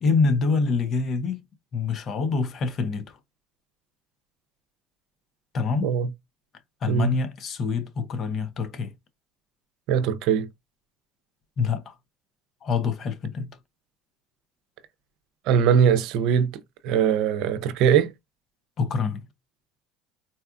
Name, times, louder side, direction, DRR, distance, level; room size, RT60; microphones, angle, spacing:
voice 1, 0.0-1.4 1.7-3.2 5.5-5.9 6.8-8.9 11.6-11.9 12.6-13.5 18.8-19.3, left 4 dB, 50° left, 0.8 m, -25 dB
voice 2, 9.9-10.5 15.5-16.6 16.8-18.1, right 8 dB, 70° right, 0.6 m, -21 dB
4.1 x 2.3 x 2.4 m
supercardioid pair, 85°, 0 cm